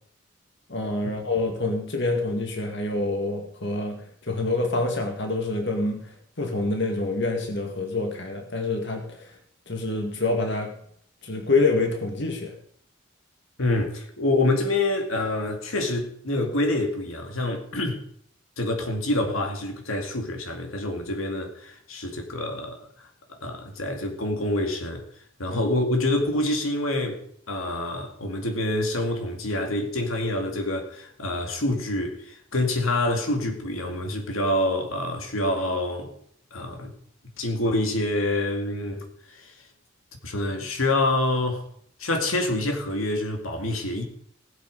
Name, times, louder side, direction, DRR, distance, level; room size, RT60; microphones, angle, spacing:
voice 1, 0.7-9.3 9.7-10.7 11.2-12.5 25.5-25.6, left 2 dB, 55° left, 2.0 m, -27 dB
voice 2, 13.6-18.0 18.6-22.8 23.3-25.0 25.4-27.2 27.5-36.1 36.5-36.9 37.4-39.5 40.2-41.6 42.0-44.0, left 1 dB, 85° left, 2.4 m, -26 dB
19.0 x 8.2 x 5.4 m
head